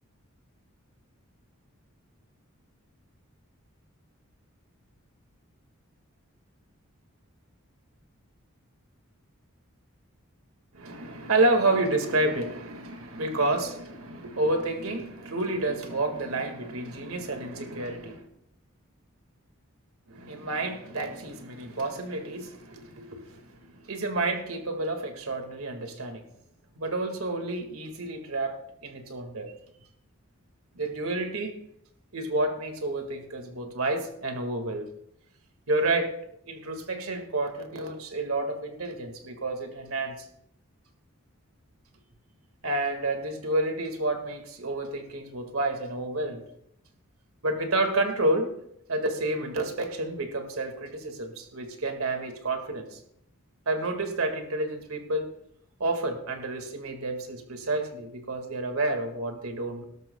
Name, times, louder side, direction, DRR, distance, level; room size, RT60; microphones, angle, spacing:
voice 1, 10.7-18.2 20.1-26.2 26.7-29.5 30.8-31.5 32.1-34.9 35.7-36.1 36.5-40.3 42.6-46.4 47.4-48.5 48.9-53.0 53.7-55.3 55.8-59.8, right 2 dB, 85° right, 5 dB, 1.9 m, -29 dB
18.0 x 13.0 x 2.3 m, 0.75 s
head